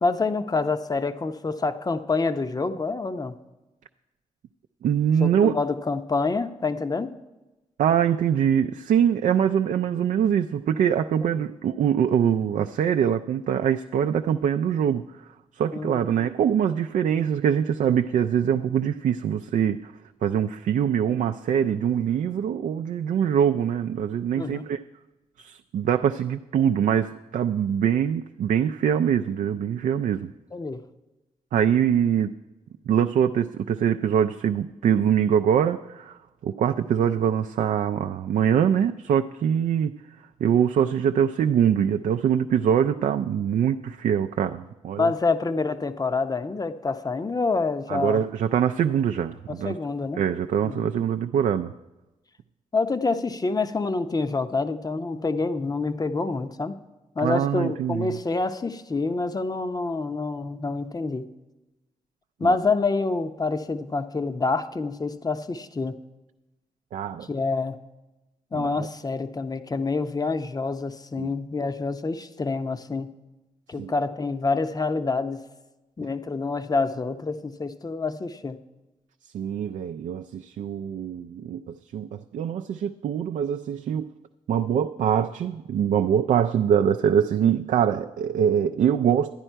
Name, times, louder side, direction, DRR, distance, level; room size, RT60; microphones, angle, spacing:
voice 1, 0.0-3.4 5.2-7.1 11.3-11.5 15.7-16.3 24.4-24.8 30.5-30.8 45.0-48.2 49.5-50.2 50.6-50.9 52.7-56.8 57.2-61.3 62.4-66.0 67.2-67.8 68.5-73.1 73.7-75.4 76.0-78.6, left 3 dB, 30° left, 0.7 m, -27 dB
voice 2, 4.8-5.5 7.8-15.0 15.6-19.9 20.2-24.8 25.4-30.3 31.5-32.3 32.9-36.2 36.4-39.9 40.4-45.1 47.9-49.8 50.2-51.7 57.2-58.2 62.4-62.6 66.9-67.3 68.5-68.9 71.2-71.3 73.8-73.9 79.3-84.1 84.5-89.4, right 8 dB, 75° right, 0.4 m, -23 dB
11.5 x 9.8 x 4.5 m
cardioid pair, 60°, 13 cm